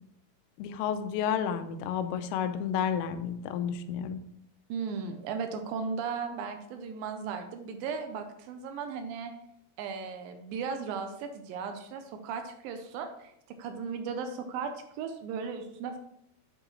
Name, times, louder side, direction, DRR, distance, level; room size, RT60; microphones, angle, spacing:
voice 1, 0.6-4.2, left 8 dB, 90° left, 10 dB, 2.6 m, -31 dB
voice 2, 4.7-9.3 9.8-13.3 13.6-16.0, right 5 dB, 80° right, 6 dB, 2.3 m, -36 dB
7.9 x 7.4 x 3.1 m, 0.77 s
omnidirectional pair, 4.4 m